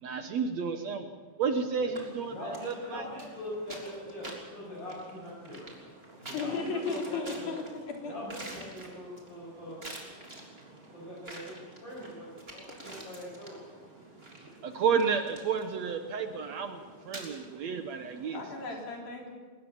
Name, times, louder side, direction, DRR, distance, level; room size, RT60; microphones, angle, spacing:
voice 1, 0.0-1.1 1.4-3.0 14.6-18.4, right 6 dB, 65° right, 7 dB, 1.9 m, -31 dB
sound 1, 1.9-18.7, right 1 dB, 15° right, 3.4 m, -48 dB
voice 2, 2.3-5.9 6.2-7.5 8.1-9.8 10.9-11.5 11.8-13.5, left 1 dB, 30° left, -8 dB, 7.2 m, -42 dB
voice 3, 6.3-8.1 18.3-19.3, left 4 dB, 85° left, 0 dB, 5.6 m, -35 dB
22.0 x 19.0 x 7.2 m, 1.4 s
omnidirectional pair, 4.1 m